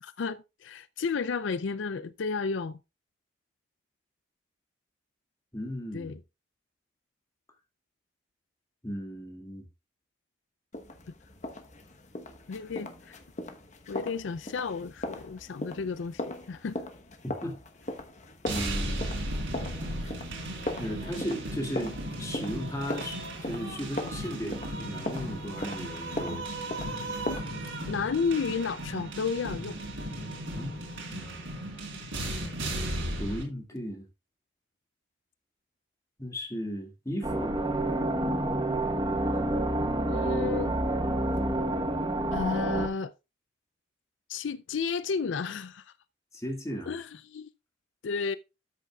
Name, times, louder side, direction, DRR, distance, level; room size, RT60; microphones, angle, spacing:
voice 1, 0.0-2.8 5.9-6.2 12.5-13.2 13.9-16.8 27.3-27.4 27.9-29.8 32.4-32.5 40.1-40.7 42.3-43.1 44.3-45.9 46.9-47.5 48.0-48.4, left 5 dB, 75° left, 0.4 m, -32 dB
voice 2, 5.5-6.2 8.8-9.7 17.2-17.6 18.5-19.0 20.0-20.1 20.8-26.5 30.5-31.3 32.4-32.5 33.2-34.1 36.2-37.6 39.3-39.5 46.3-46.9, equal, 15° left, 2.1 m, -36 dB
sound 1, 10.7-27.4, left 1 dB, 35° left, 1.0 m, -39 dB
sound 2, 18.5-33.4, right 1 dB, 85° right, 3.9 m, -36 dB
sound 3, 37.2-42.9, right 1 dB, 25° right, 1.0 m, -28 dB
13.0 x 6.7 x 2.3 m
head